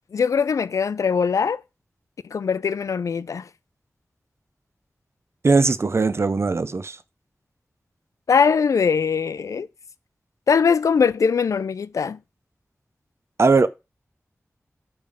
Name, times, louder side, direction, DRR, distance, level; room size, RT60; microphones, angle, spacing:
voice 1, 0.1-1.6 2.3-3.5 8.3-9.7 10.5-12.2, left 6 dB, 90° left, 0.4 m, -21 dB
voice 2, 5.4-7.0 13.4-13.7, right 4 dB, 55° right, 0.6 m, -19 dB
8.6 x 3.5 x 6.6 m
cardioid pair, 50°, 5 cm